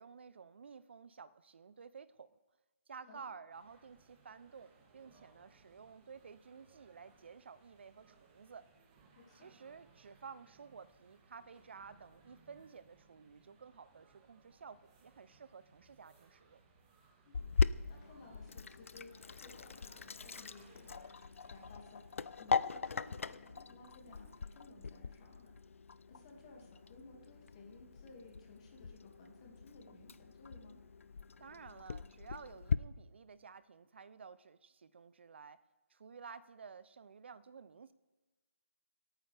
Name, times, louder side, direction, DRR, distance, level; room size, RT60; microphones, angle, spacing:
voice 1, 0.0-2.4 2.9-8.7 9.3-16.6 31.4-35.6 35.9-37.9, right 5 dB, 50° right, 16 dB, 0.6 m, -53 dB
sound 1, 3.5-23.0, right 4 dB, 25° right, 2.6 m, -66 dB
voice 2, 9.1-9.5 17.2-17.4 17.9-25.5 26.1-30.8, left 3 dB, 25° left, 0 dB, 2.2 m, -57 dB
Sink (filling or washing), 17.3-32.8, left 5 dB, 65° left, 0.4 m, -40 dB
22.5 x 9.1 x 3.4 m, 1.2 s
hypercardioid pair, 165°, 8 cm